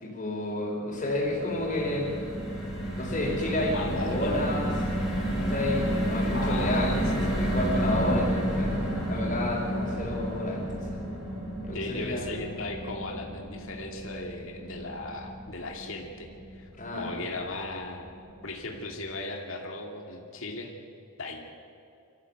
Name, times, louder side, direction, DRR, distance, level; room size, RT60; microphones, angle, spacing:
voice 1, 0.0-2.1 3.0-4.9 5.4-8.8 9.1-11.0 11.7-12.3 16.8-17.1, left 1 dB, 35° left, -1 dB, 5.0 m, -30 dB
sound 1, 0.9-17.2 17.6-17.8 18.0-18.3, equal, 5° right, 6.2 m, -31 dB
voice 2, 3.5-4.3 6.3-7.3 11.7-16.7 17.0-18.1 18.4-20.7 21.2-21.4, left 2 dB, 65° left, 1 dB, 2.4 m, -37 dB
23.5 x 14.5 x 8.0 m, 2.5 s
head